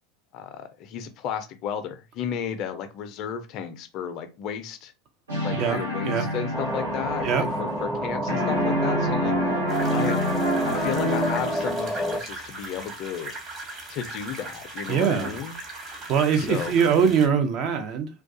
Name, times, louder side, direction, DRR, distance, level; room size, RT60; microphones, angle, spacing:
voice 1, 0.3-4.9 5.4-9.3 9.8-10.2 10.7-13.3 13.9-15.6 16.4-16.7, left 8 dB, 50° left, 0.4 m, -33 dB
sound 1, 5.3-8.0 8.3-11.9, equal, 80° right, 0.8 m, -27 dB
voice 2, 5.5-6.3 7.2-7.5 14.9-15.4 15.9-18.1, right 7 dB, 50° right, 0.5 m, -23 dB
sound 2, 6.5-12.2, right 1 dB, ahead, 0.5 m, -29 dB
sound 3, 9.7-17.3, right 2 dB, 30° right, 1.0 m, -39 dB
2.3 x 2.2 x 2.5 m
hypercardioid pair, 85°, 0 cm